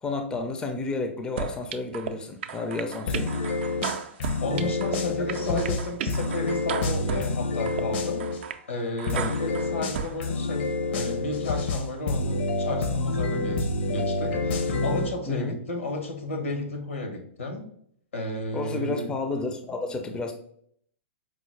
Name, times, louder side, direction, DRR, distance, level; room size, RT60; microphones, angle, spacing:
voice 1, 0.0-3.4 4.5-4.7 5.3-5.7 9.1-9.3 15.3-15.6 18.5-20.3, left 3 dB, 10° left, 5 dB, 0.4 m, -31 dB
sound 1, 1.4-2.1 2.4-5.0 5.3-7.3 7.7-7.8 8.2-8.6 9.0-10.1, right 8 dB, 60° right, 0.4 m, -34 dB
sound 2, 3.1-8.4 9.1-15.1, left 3 dB, 55° left, 0.6 m, -28 dB
voice 2, 4.4-8.2 8.7-17.7 18.1-19.1, left 2 dB, 85° left, 3 dB, 1.0 m, -33 dB
4.7 x 2.0 x 3.1 m, 0.66 s
hypercardioid pair, 125°, 7 cm